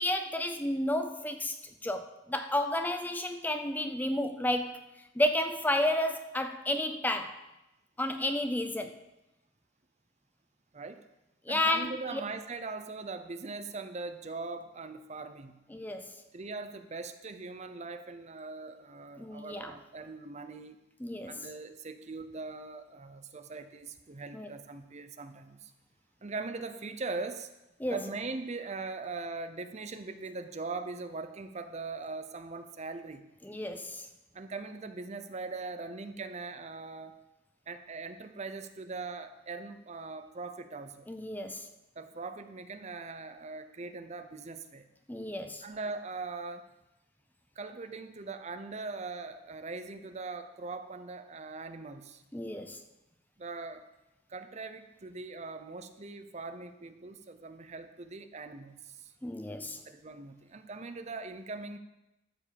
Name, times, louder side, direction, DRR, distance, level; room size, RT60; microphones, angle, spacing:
voice 1, 0.0-1.5 1.8-4.8 5.2-7.4 8.0-9.0 11.5-12.2 15.7-16.2 19.2-19.7 21.0-21.4 24.3-24.5 27.8-28.0 33.4-34.1 41.1-41.7 45.1-45.6 52.3-52.8 59.2-59.8, left 1 dB, 10° left, 7 dB, 0.5 m, -31 dB
voice 2, 10.7-11.0 11.5-15.6 16.3-20.8 21.3-25.7 26.2-27.5 27.9-33.2 34.3-37.1 37.7-41.1 42.0-44.9 45.6-46.6 47.6-52.2 53.4-53.8 54.3-59.1 59.9-61.8, right 3 dB, 35° right, 9 dB, 0.6 m, -41 dB
13.0 x 5.2 x 6.9 m, 0.95 s
head